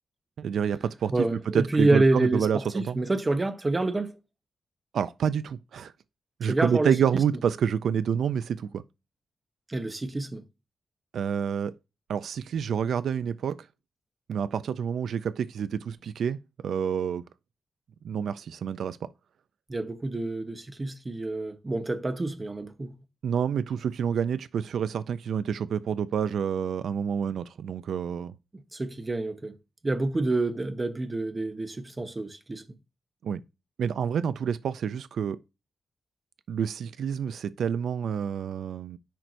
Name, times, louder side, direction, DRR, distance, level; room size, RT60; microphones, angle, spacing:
voice 1, 0.4-3.0 4.9-5.9 6.4-8.8 11.1-11.7 12.1-13.6 14.3-17.2 18.0-19.1 23.2-28.3 33.2-33.4 33.8-35.4 36.5-39.0, right 7 dB, 85° right, 0.3 m, -28 dB
voice 2, 1.1-4.1 6.4-6.9 9.7-10.4 19.7-22.9 28.7-29.5 29.8-32.6, right 2 dB, 25° right, 0.9 m, -27 dB
10.0 x 4.5 x 2.6 m
wide cardioid pair, 120°, 0 cm